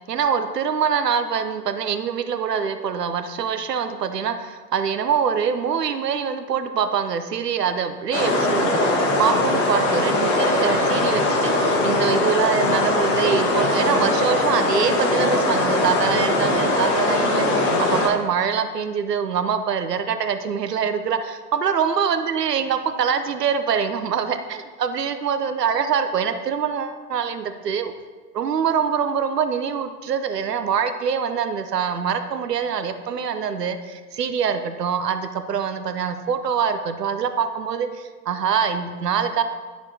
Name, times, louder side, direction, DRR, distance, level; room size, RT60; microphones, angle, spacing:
voice 1, 0.1-27.9 28.3-39.4, right 7 dB, 75° right, 9 dB, 0.8 m, -24 dB
sound 1, 8.1-18.1, left 2 dB, 50° left, 1.4 m, -21 dB
10.5 x 6.0 x 2.8 m, 1.4 s
figure-of-eight pair, 100°, 49 cm